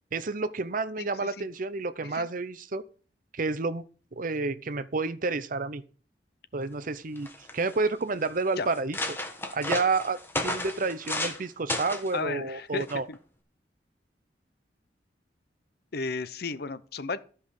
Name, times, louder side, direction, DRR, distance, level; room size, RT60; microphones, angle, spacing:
voice 1, 0.1-2.8 3.3-3.8 4.1-5.8 6.5-7.3 7.5-9.2 9.5-13.1, right 3 dB, 50° right, 0.7 m, -30 dB
voice 2, 1.0-1.5 2.0-2.3 8.6-8.7 12.1-13.2 15.9-17.2, left 4 dB, 60° left, 0.7 m, -34 dB
sound 1, 6.8-6.9 7.2-7.7 8.3-8.4 8.7-11.4 11.7-12.1 12.9-13.1, left 1 dB, 15° left, 1.4 m, -33 dB
12.5 x 5.6 x 6.5 m
head